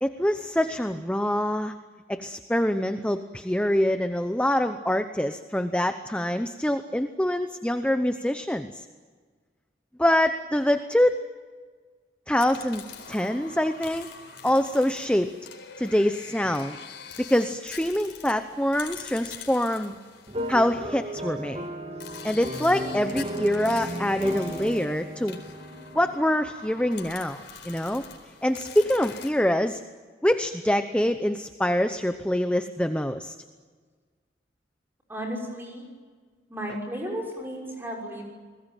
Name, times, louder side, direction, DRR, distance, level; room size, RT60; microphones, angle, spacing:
voice 1, 0.0-1.7 2.1-8.8 10.0-11.2 12.3-12.8 13.1-14.1 14.4-15.3 15.8-16.8 17.2-20.0 20.5-21.6 22.2-25.4 25.9-28.0 28.4-29.8 30.2-33.3, left 1 dB, 5° left, 8 dB, 0.8 m, -25 dB
sound 1, 12.4-21.2 22.0-29.3, left 6 dB, 85° left, 4.2 m, -44 dB
sound 2, 20.3-26.2, right 1 dB, 35° right, 2.4 m, -35 dB
voice 2, 35.1-35.9 36.5-38.2, equal, 10° right, 0 dB, 6.2 m, -34 dB
29.5 x 21.0 x 9.1 m, 1.5 s
head